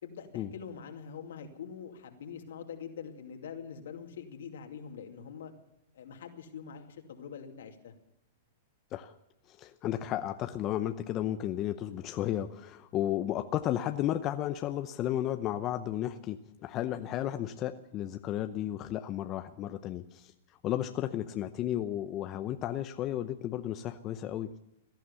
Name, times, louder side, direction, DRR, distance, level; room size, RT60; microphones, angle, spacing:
voice 1, 0.0-5.5 5.9-7.9, left 7 dB, 80° left, 4 dB, 2.5 m, -44 dB
voice 2, 9.5-20.3 20.6-24.5, left 12 dB, 35° left, 8 dB, 0.8 m, -33 dB
17.5 x 12.0 x 7.0 m, 0.84 s
hypercardioid pair, 125°, 0 cm